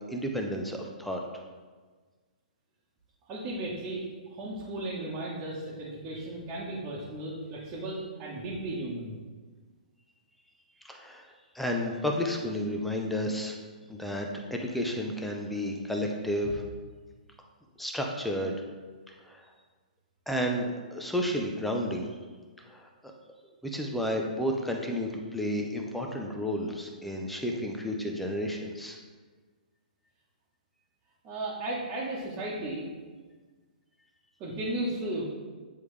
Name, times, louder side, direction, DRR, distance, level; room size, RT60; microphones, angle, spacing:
voice 1, 0.1-1.2 10.8-13.6 13.9-16.6 17.8-18.6 19.1-19.5 20.3-22.1 22.7-23.1 23.6-29.0, equal, ahead, 1 dB, 0.6 m, -32 dB
voice 2, 3.3-9.2 31.2-32.8 34.4-35.2, right 1 dB, 30° right, -8 dB, 1.2 m, -35 dB
8.9 x 3.5 x 3.3 m, 1.4 s
hypercardioid pair, 140°, 5 cm